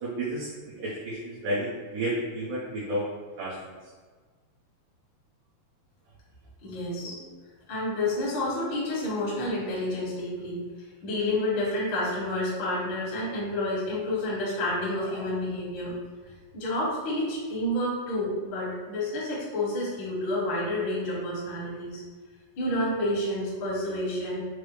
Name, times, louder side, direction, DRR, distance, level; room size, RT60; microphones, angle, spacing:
voice 1, 0.0-3.1 3.4-3.7, right 1 dB, 70° right, -9 dB, 2.0 m, -31 dB
voice 2, 6.6-7.2 7.7-10.6 11.0-15.9 16.5-22.0 22.6-24.4, left 1 dB, 60° left, -7 dB, 1.2 m, -29 dB
6.5 x 2.2 x 3.2 m, 1.4 s
omnidirectional pair, 4.7 m